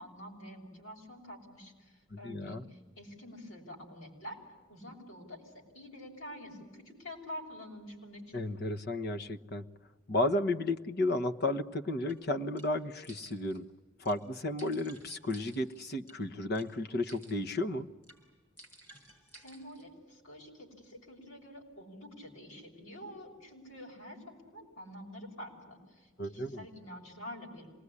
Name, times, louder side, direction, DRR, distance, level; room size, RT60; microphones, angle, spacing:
voice 1, 0.0-4.4 4.7-8.4 19.3-27.7, equal, 80° left, 1 dB, 6.6 m, -47 dB
voice 2, 2.1-2.7 8.3-9.7 10.1-13.7 14.0-17.9 26.2-26.7, left 2 dB, 55° left, 8 dB, 1.2 m, -33 dB
sound 1, 12.1-12.2 12.6-12.7 13.0-13.6 14.1-14.2 14.6-16.2 16.6-16.7 17.1-17.6 18.0-18.2 18.6-19.9, right 1 dB, 10° left, 6.2 m, -56 dB
26.5 x 20.0 x 9.8 m, 1.4 s
head